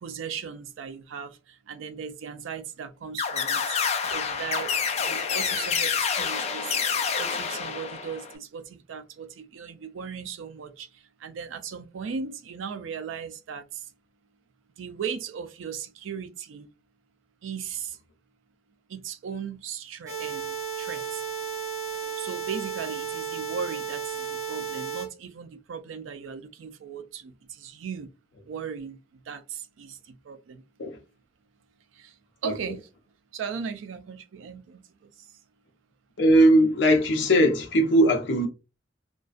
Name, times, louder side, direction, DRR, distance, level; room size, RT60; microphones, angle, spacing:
voice 1, 0.0-3.8 4.1-4.7 5.0-6.8 7.2-10.9 11.2-13.8 14.8-16.7 17.4-18.0 18.9-21.2 22.2-28.1 28.5-29.0 29.3-30.6 32.0-32.1 32.4-32.9 33.3-35.1, right 6 dB, 85° right, 0.4 m, -37 dB
sound 1, 3.2-8.3, left 6 dB, 35° left, 0.3 m, -28 dB
sound 2, 20.1-25.1, right 7 dB, 20° right, 1.0 m, -33 dB
voice 2, 36.2-38.5, right 1 dB, 65° left, 0.7 m, -19 dB
2.5 x 2.1 x 2.3 m
head